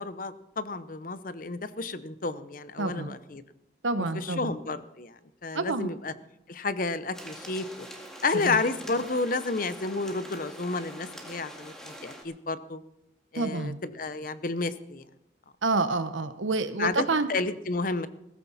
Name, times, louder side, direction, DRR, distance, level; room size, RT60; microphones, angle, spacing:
voice 1, 0.0-3.4 4.1-5.1 5.4-6.1 6.5-7.9 8.2-12.8 13.3-15.0 16.8-18.1, left 3 dB, 45° left, 13 dB, 0.7 m, -31 dB
voice 2, 2.8-3.2 3.8-4.6 5.5-5.9 8.4-8.6 13.4-13.8 15.6-17.3, right 3 dB, 85° right, 11 dB, 1.0 m, -28 dB
sound 1, 7.1-12.2, equal, 5° left, 2.1 m, -44 dB
17.0 x 15.0 x 4.2 m, 0.86 s
head